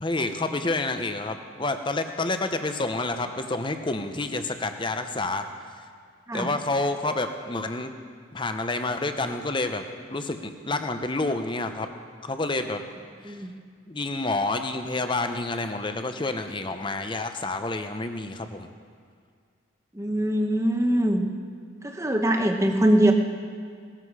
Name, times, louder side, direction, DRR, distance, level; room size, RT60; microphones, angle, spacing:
voice 1, 0.0-5.5 6.3-7.9 8.3-11.9 12.2-12.8 13.2-13.4 13.9-18.7, left 2 dB, 25° left, 7 dB, 0.7 m, -29 dB
voice 2, 19.9-21.2 21.8-23.1, right 1 dB, 15° right, 4 dB, 1.0 m, -22 dB
18.0 x 13.5 x 4.9 m, 2.1 s
head